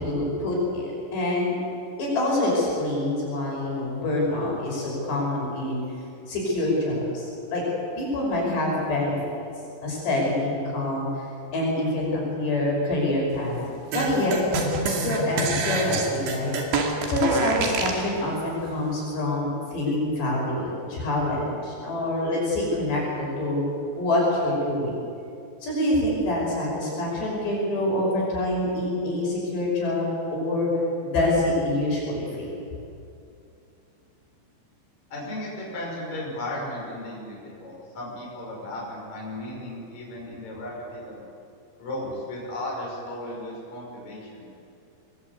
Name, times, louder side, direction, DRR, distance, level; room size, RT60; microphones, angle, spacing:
voice 1, 0.0-1.5 2.0-5.8 6.3-7.6 8.0-9.2 9.8-11.1 11.5-13.6 13.9-14.4 14.8-16.5 17.1-23.6 24.0-25.0 25.6-30.7 31.0-32.5, left 1 dB, 60° left, -3 dB, 7.9 m, -26 dB
sound 1, 13.9-18.0, right 3 dB, 70° right, 4.6 m, -26 dB
voice 2, 35.1-41.2 41.8-44.5, left 1 dB, 35° left, -4 dB, 7.1 m, -35 dB
26.0 x 21.0 x 8.4 m, 2.6 s
omnidirectional pair, 5.5 m